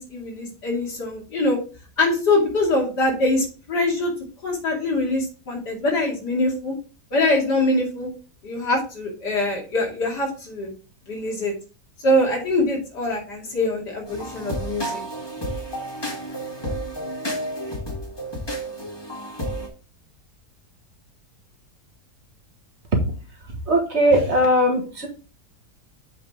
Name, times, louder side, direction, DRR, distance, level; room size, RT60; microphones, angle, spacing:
voice 1, 0.0-1.6 2.0-4.1 4.4-6.7 7.1-8.1 8.4-10.7 11.1-11.5 12.0-15.0, left 2 dB, 75° left, -1 dB, 3.2 m, -23 dB
sound 1, 14.1-19.7, equal, 15° left, 1.7 m, -31 dB
voice 2, 23.7-25.1, equal, 45° right, 2 dB, 1.7 m, -19 dB
7.7 x 5.3 x 3.7 m, 0.35 s
omnidirectional pair, 1.8 m